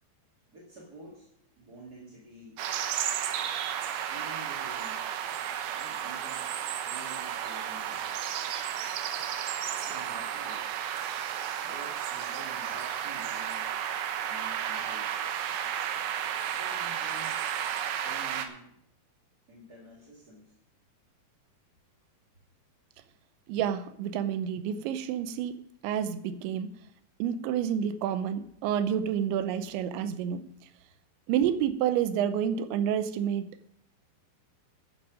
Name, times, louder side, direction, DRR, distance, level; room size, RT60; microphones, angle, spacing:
voice 1, 0.5-1.3 1.6-2.6 4.1-5.1 5.8-6.5 6.8-8.1 9.7-10.7 11.6-13.7 14.2-15.1 16.6-17.4 17.9-18.8 19.5-20.6, right 1 dB, 30° right, -4 dB, 1.8 m, -49 dB
sound 1, 2.6-18.5, right 9 dB, 75° right, 2.5 m, -33 dB
voice 2, 23.5-26.8 27.2-30.4 31.3-33.5, right 9 dB, 90° right, 12 dB, 3.1 m, -29 dB
11.5 x 10.5 x 5.1 m, 0.73 s
omnidirectional pair, 5.1 m